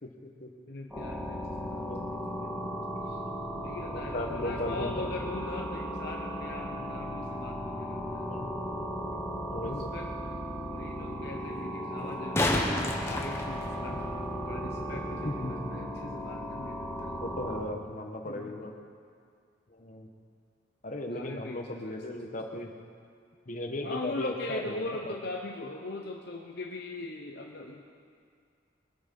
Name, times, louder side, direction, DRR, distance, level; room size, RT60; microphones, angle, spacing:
voice 1, 0.0-0.5 1.8-2.1 3.5-5.1 8.3-8.5 9.5-9.9 12.0-12.1 15.2-15.7 17.2-18.7 19.7-20.1 20.8-22.7 23.5-25.1, left 1 dB, 40° left, 3 dB, 1.3 m, -37 dB
voice 2, 0.7-1.8 2.1-2.7 3.0-3.2 3.6-8.3 9.6-10.1 10.7-14.1 14.4-17.1 18.3-18.6 21.1-22.0 23.8-27.8, left 2 dB, 55° left, 0 dB, 0.9 m, -40 dB
sound 1, 0.9-17.6, equal, 5° right, 2.2 m, -36 dB
sound 2, 9.1-9.2 12.0-14.1 17.0-17.1, left 1 dB, 15° left, 1.3 m, -30 dB
22.0 x 8.7 x 5.5 m, 2.2 s
head